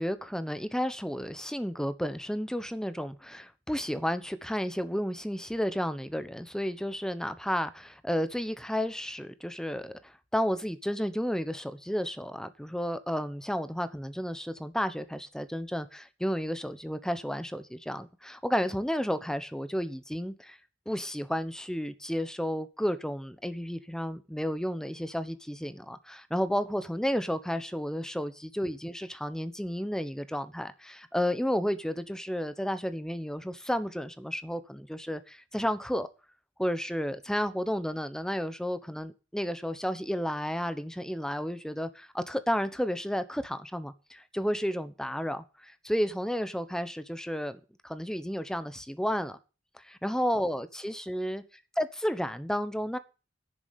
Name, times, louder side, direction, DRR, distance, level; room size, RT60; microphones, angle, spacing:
voice 1, 0.0-20.6 20.9-36.1 36.6-49.4 49.8-51.4 51.8-53.0, equal, 5° left, 12 dB, 1.0 m, -32 dB
11.0 x 7.0 x 8.4 m, 0.32 s
head